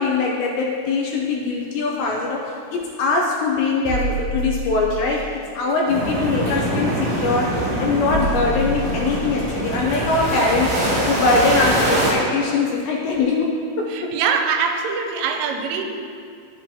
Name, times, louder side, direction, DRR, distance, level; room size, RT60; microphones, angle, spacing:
voice 1, 0.0-5.2 5.6-14.1, left 3 dB, 85° left, -2 dB, 2.6 m, -22 dB
sound 1, 3.8-5.1 7.0-7.1 8.1-9.4 11.2-11.3 11.8-11.9, equal, 60° left, 2.4 m, -27 dB
sound 2, 5.9-12.1, right 1 dB, 50° right, 2.6 m, -23 dB
voice 2, 13.9-15.8, right 6 dB, 85° right, 4 dB, 3.1 m, -23 dB
12.5 x 7.5 x 2.9 m, 2.3 s
omnidirectional pair, 5.6 m